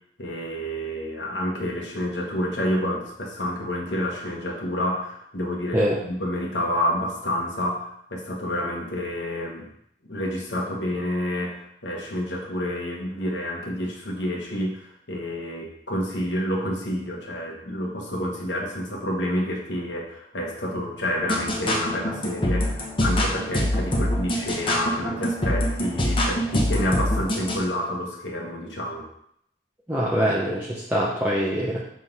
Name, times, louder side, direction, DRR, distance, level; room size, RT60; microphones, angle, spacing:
voice 1, 0.2-9.7 10.0-29.0, left 1 dB, 80° left, -1 dB, 1.4 m, -29 dB
sound 1, 21.2-27.6, equal, 30° left, 1.0 m, -25 dB
voice 2, 29.9-31.8, equal, 10° right, -6 dB, 0.7 m, -24 dB
6.4 x 3.7 x 4.1 m, 0.73 s
head